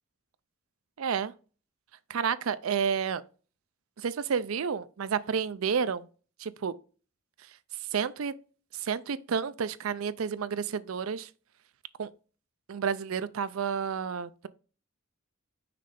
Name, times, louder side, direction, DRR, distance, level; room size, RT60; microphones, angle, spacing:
voice 1, 1.0-1.3 2.1-3.2 4.0-6.1 6.4-6.7 7.9-8.3 8.7-11.3 12.0-12.1 12.7-14.5, right 6 dB, 75° right, 0.5 m, -30 dB
5.8 x 3.2 x 5.1 m
head